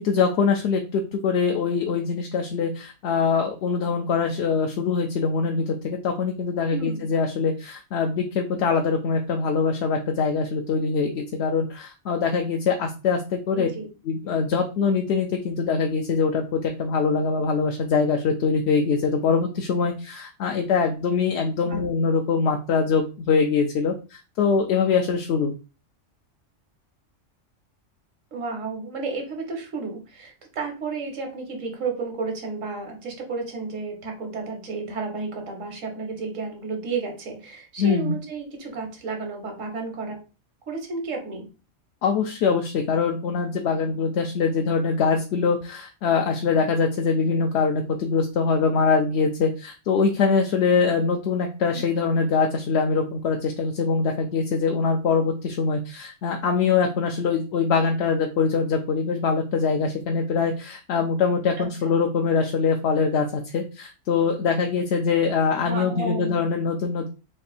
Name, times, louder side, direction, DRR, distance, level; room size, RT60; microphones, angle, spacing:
voice 1, 0.0-13.7 14.1-25.5 37.8-38.2 42.0-67.1, left 5 dB, 65° left, 3 dB, 0.7 m, -23 dB
voice 2, 6.7-7.1 13.5-13.9 21.6-21.8 28.3-40.2 40.7-41.5 51.7-51.8 61.6-62.0 65.6-66.4, right 4 dB, 80° right, 3 dB, 1.4 m, -32 dB
3.5 x 2.5 x 4.1 m, 0.32 s
omnidirectional pair, 1.3 m